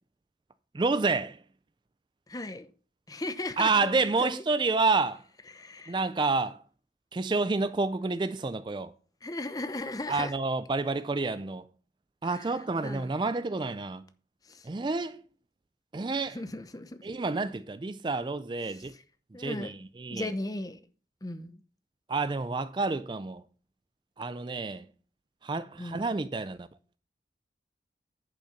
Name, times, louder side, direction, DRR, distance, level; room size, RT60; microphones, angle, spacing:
voice 1, 0.7-1.4 3.6-5.2 5.9-6.6 7.1-8.9 10.1-11.7 12.2-14.0 14.6-15.2 15.9-16.4 17.0-18.9 19.4-20.3 22.1-23.4 24.2-24.9 25.4-26.7, right 3 dB, 25° right, 0.3 m, -29 dB
voice 2, 2.3-2.7 3.1-4.4 5.5-5.9 9.2-10.3 12.2-12.4 12.8-13.1 14.5-14.6 16.3-17.0 19.3-19.7 20.1-20.8 21.2-21.6 25.8-26.1, left 2 dB, 20° left, 0.8 m, -36 dB
10.5 x 5.6 x 5.7 m
head